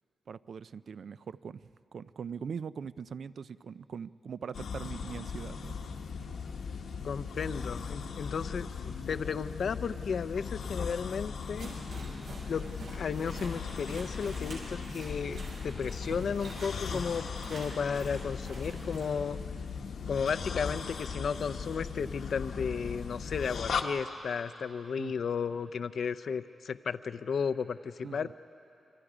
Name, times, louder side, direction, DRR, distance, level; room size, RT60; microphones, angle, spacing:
voice 1, 0.3-5.7 25.0-25.2 28.0-28.3, right 6 dB, 65° right, 16 dB, 0.4 m, -41 dB
sound 1, 4.5-23.8, left 5 dB, 85° left, 1.3 m, -38 dB
voice 2, 7.0-11.7 12.5-12.6 12.9-19.4 20.1-28.3, left 6 dB, 65° left, 11 dB, 0.5 m, -34 dB
sound 2, 11.5-19.1, right 2 dB, 90° right, 6.3 m, -46 dB
28.0 x 25.0 x 5.0 m, 2.8 s
wide cardioid pair, 125°, 0 cm